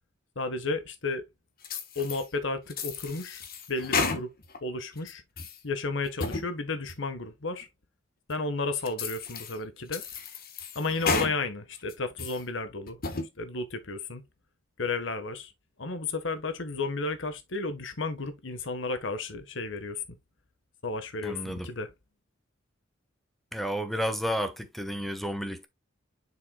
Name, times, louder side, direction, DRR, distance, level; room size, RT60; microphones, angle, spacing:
voice 1, 0.3-1.2 1.9-3.4 3.7-4.3 4.6-5.2 5.6-7.7 8.3-10.0 10.7-13.0 13.4-14.2 14.8-15.5 15.8-20.0 20.8-21.9, left 3 dB, 65° left, 1.4 m, -33 dB
sound 1, 1.6-2.3 2.7-4.6 5.0-5.6 6.0-6.5 6.9-7.0 7.6-7.7 8.3-8.4 8.8-9.6 9.9-11.3 11.8-12.4 12.9-13.3, left 4 dB, 50° left, 1.3 m, -32 dB
voice 2, 21.2-21.7 23.5-25.7, equal, ahead, 1.2 m, -31 dB
7.3 x 6.2 x 2.3 m
head